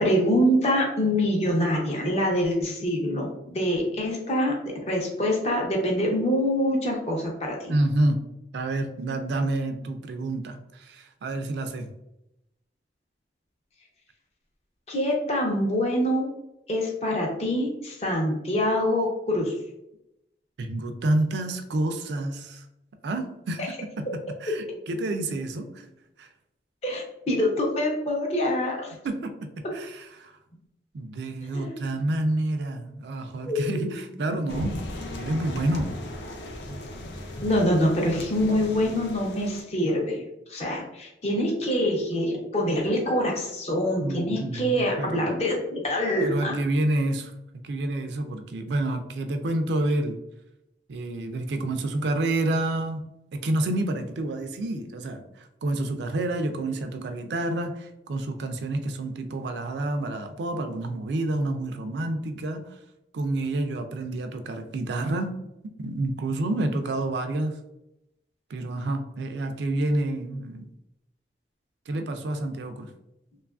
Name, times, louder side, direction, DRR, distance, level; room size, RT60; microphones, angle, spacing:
voice 1, 0.0-4.5 4.9-7.7 14.9-16.3 16.7-19.5 26.8-28.9 31.5-31.8 33.5-33.8 37.4-40.2 40.5-46.5 57.0-57.1, equal, 35° left, -1 dB, 0.6 m, -25 dB
voice 2, 7.7-8.2 8.5-11.9 20.6-22.6 23.0-24.0 24.4-25.9 26.2-26.3 29.0-29.3 29.7-30.4 30.9-34.8 35.1-35.9 36.7-36.8 44.0-45.3 46.2-47.3 47.6-50.2 50.9-53.0 53.3-62.8 63.1-65.4 65.8-67.6 68.5-70.7 71.9-72.9, right 2 dB, 75° right, 7 dB, 0.3 m, -28 dB
sound 1, 34.5-39.6, left 1 dB, 80° left, 0.5 m, -36 dB
2.9 x 2.3 x 2.3 m, 0.87 s
head